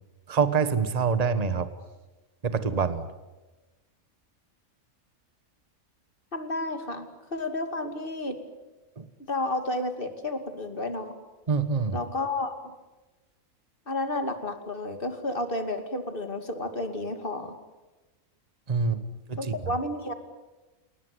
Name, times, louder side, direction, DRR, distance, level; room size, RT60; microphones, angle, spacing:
voice 1, 0.3-1.7 2.4-3.1 9.0-9.1 11.5-12.0 18.7-19.0 19.3-19.4, right 5 dB, 30° right, 11 dB, 1.4 m, -25 dB
voice 2, 6.3-8.3 9.3-11.1 11.9-12.6 13.9-17.6 19.4-20.1, left 2 dB, 40° left, 7 dB, 2.7 m, -31 dB
29.0 x 18.5 x 9.8 m, 1.2 s
omnidirectional pair, 1.5 m